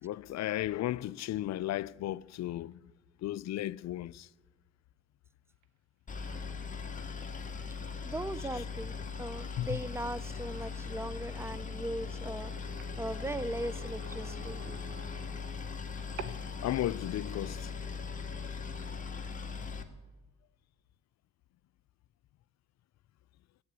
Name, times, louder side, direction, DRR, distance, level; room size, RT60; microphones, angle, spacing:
voice 1, 0.0-2.8 3.2-4.3 9.6-9.8 16.2-16.3 16.6-17.7, left 14 dB, 60° left, 0.4 m, -34 dB
sound 1, 5.5-17.5, right 8 dB, 75° right, 1.1 m, -55 dB
Boat Water vehicle, 6.1-19.8, left 5 dB, 25° left, 1.6 m, -40 dB
voice 2, 8.0-8.9 9.2-12.5 13.0-14.9, right 1 dB, 10° right, 0.6 m, -39 dB
Brass instrument, 11.7-15.9, equal, 40° right, 3.6 m, -52 dB
16.0 x 8.6 x 8.2 m
cardioid pair, 90°, 30 cm